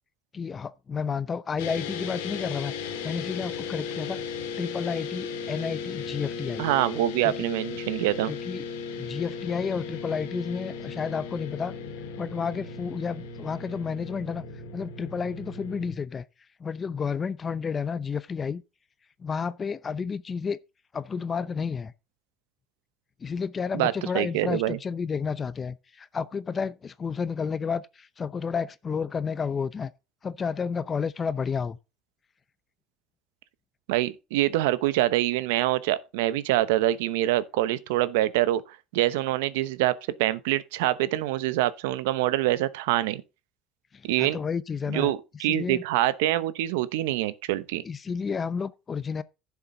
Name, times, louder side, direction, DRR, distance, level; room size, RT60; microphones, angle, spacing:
voice 1, 0.3-4.2 4.6-6.7 7.2-7.3 8.3-8.6 9.0-11.7 12.2-14.4 14.7-16.2 16.6-18.6 19.2-20.6 20.9-21.9 23.2-29.9 30.2-31.8 43.9-45.1 45.5-45.8 47.8-49.2, left 6 dB, 30° left, 0.7 m, -31 dB
sound 1, 1.6-15.9, left 5 dB, 90° left, 2.1 m, -36 dB
voice 2, 6.6-8.3 23.7-24.8 33.9-38.6 38.9-43.2 44.0-44.4 44.9-47.8, right 15 dB, 85° right, 0.8 m, -25 dB
11.0 x 7.1 x 3.8 m
supercardioid pair, 90°, 0 cm